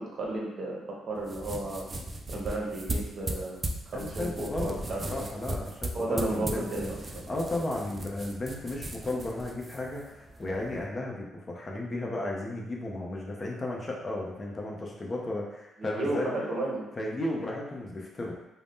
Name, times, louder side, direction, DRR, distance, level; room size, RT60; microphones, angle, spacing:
voice 1, 0.0-1.9 2.3-3.6 3.9-5.3 5.9-7.2 15.8-16.9, right 2 dB, 55° right, -2 dB, 0.7 m, -33 dB
sound 1, 1.2-10.9, right 1 dB, 30° right, 0.3 m, -38 dB
voice 2, 3.9-6.9 7.3-16.3 17.0-18.3, left 1 dB, 30° left, -2 dB, 0.6 m, -34 dB
2.6 x 2.1 x 3.5 m, 0.92 s
cardioid pair, 90°, 0 cm